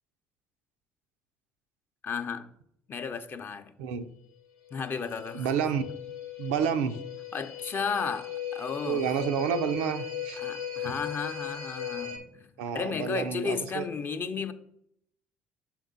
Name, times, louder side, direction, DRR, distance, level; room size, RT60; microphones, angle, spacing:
voice 1, 2.0-2.5 2.9-3.7 4.7-5.5 7.3-9.1 10.4-14.5, left 5 dB, 40° left, 0.6 m, -34 dB
sound 1, 4.7-12.2, left 8 dB, 75° left, 0.7 m, -38 dB
voice 2, 5.3-5.9 6.4-7.0 8.8-10.4 10.8-10.9 12.6-13.8, right 7 dB, 80° right, 0.5 m, -29 dB
6.0 x 4.5 x 3.9 m
hypercardioid pair, 65°, 6 cm